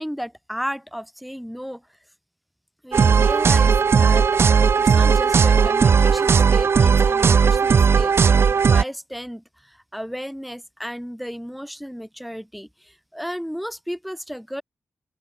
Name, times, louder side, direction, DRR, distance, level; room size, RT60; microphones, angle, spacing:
voice 1, 0.0-1.8 2.8-14.6, equal, ahead, 5.3 m, -34 dB
sound 1, 2.9-8.8, right 6 dB, 60° right, 0.4 m, -16 dB
open air
cardioid pair, 70°, 5 cm